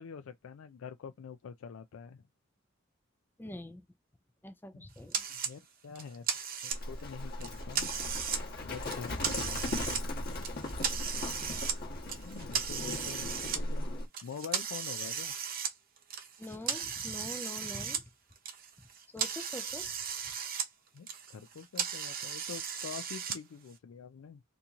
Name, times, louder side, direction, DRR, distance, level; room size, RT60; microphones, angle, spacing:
voice 1, 0.0-2.2 4.7-4.9 5.3-6.3 6.6-7.9 8.6-10.1 12.2-13.9 14.2-15.3 20.9-24.4, left 6 dB, 80° left, 0.4 m, -45 dB
voice 2, 3.4-3.8 4.4-5.2 16.4-18.0 19.1-19.9, left 1 dB, 10° left, 0.4 m, -44 dB
sound 1, 5.1-5.5 6.0-7.0 7.4-8.4 8.8-10.0 10.4-11.8 12.1-13.6 14.1-18.0 18.3-20.7 21.0-23.4, right 7 dB, 45° right, 0.8 m, -36 dB
Livestock farm animals working animals, 6.7-14.1, left 1 dB, 50° left, 1.1 m, -38 dB
2.9 x 2.6 x 3.5 m
head